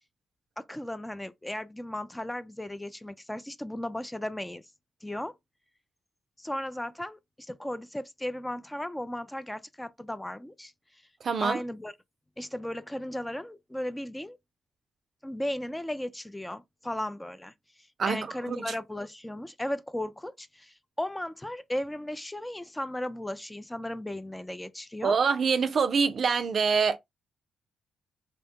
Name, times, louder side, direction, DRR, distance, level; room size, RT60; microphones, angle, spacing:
voice 1, 0.6-4.6 5.0-5.3 6.4-10.7 11.4-11.9 12.4-14.4 15.2-17.5 18.0-25.2, left 1 dB, 10° left, 0.4 m, -36 dB
voice 2, 11.2-11.6 18.0-18.8 25.0-27.0, right 5 dB, 55° right, 0.4 m, -25 dB
2.7 x 2.1 x 2.9 m
supercardioid pair, 60°, 0 cm